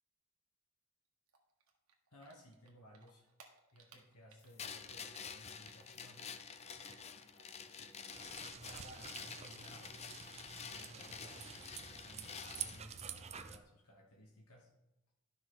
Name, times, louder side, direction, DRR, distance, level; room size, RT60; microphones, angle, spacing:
Typing, 1.3-7.4 7.7-11.3 11.5-12.9, right 5 dB, 75° right, 1.5 m, -65 dB
voice 1, 2.1-3.3 3.7-6.3 7.3-9.9 10.7-14.7, equal, 85° left, -1 dB, 1.5 m, -60 dB
sound 1, 4.6-12.8, left 6 dB, 30° left, 0.5 m, -49 dB
sound 2, 8.1-13.6, right 7 dB, 30° right, 0.5 m, -49 dB
12.5 x 5.8 x 3.9 m, 0.91 s
head